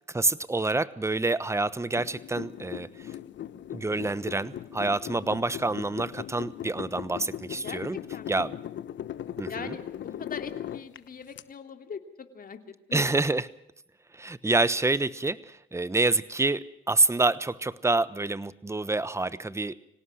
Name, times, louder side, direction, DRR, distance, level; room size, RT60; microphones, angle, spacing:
voice 1, 0.1-3.1 3.7-8.0 8.3-8.6 9.4-9.8 12.9-13.5 14.1-19.8, right 2 dB, 15° right, 16 dB, 1.1 m, -27 dB
sound 1, 2.0-11.4, left 11 dB, 65° left, 1.1 m, -39 dB
voice 2, 9.5-12.6 12.9-13.0, left 6 dB, 45° left, 7 dB, 2.9 m, -41 dB
25.5 x 17.5 x 6.4 m, 0.80 s
cardioid pair, 90°, 20 cm